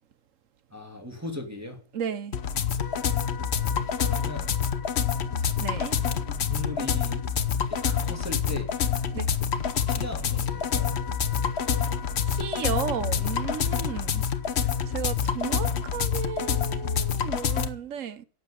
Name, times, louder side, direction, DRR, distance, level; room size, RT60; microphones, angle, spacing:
voice 1, 0.7-1.8 3.1-3.7 4.0-4.5 5.3-5.5 5.9-7.2 7.7-8.7 9.9-11.0, left 1 dB, 10° right, 2.6 m, -39 dB
voice 2, 1.9-2.4 5.6-6.0 9.1-9.3 12.3-14.2 14.9-18.2, right 8 dB, 60° right, 1.1 m, -34 dB
sound 1, 2.3-17.7, left 7 dB, 50° left, 1.1 m, -27 dB
12.0 x 7.9 x 8.8 m
omnidirectional pair, 1.6 m